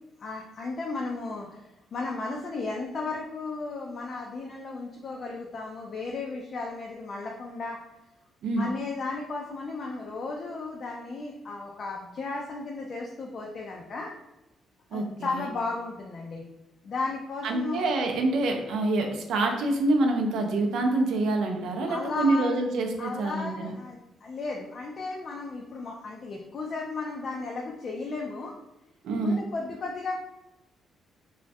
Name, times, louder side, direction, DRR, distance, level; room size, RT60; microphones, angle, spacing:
voice 1, 0.2-1.6 1.9-7.8 8.6-14.1 14.9-16.4 16.8-17.9 21.9-22.6 23.0-28.5 29.2-30.1, left 3 dB, 50° left, -1 dB, 0.3 m, -34 dB
voice 2, 14.9-15.5 17.4-23.7 29.0-29.4, right 2 dB, 80° right, 2 dB, 0.4 m, -26 dB
2.3 x 2.1 x 2.6 m, 0.94 s
cardioid pair, 90°, 0 cm